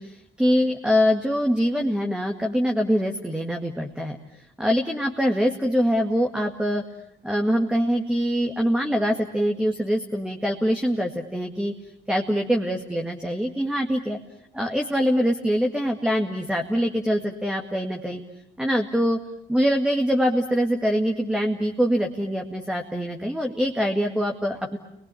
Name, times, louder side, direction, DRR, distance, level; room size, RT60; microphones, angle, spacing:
voice 1, 0.0-4.2 4.6-6.8 7.2-11.7 12.1-14.2 14.5-18.2 18.6-19.2 19.5-24.8, equal, 5° right, 2 dB, 2.0 m, -24 dB
30.0 x 22.5 x 8.5 m, 0.79 s
cardioid pair, 90°, 20 cm